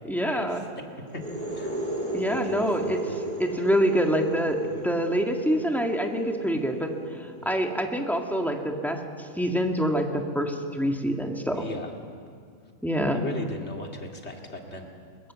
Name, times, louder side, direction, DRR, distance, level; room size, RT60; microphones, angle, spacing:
voice 1, 0.1-0.6 2.1-11.7 12.8-13.2, equal, ahead, 2 dB, 1.8 m, -26 dB
sound 1, 1.1-8.6, right 1 dB, 35° right, 3.5 m, -35 dB
voice 2, 2.4-3.2 4.6-4.8 7.4-7.5 11.5-11.9 13.1-14.9, left 2 dB, 55° left, 2 dB, 2.5 m, -38 dB
21.5 x 21.0 x 7.6 m, 2.2 s
omnidirectional pair, 1.4 m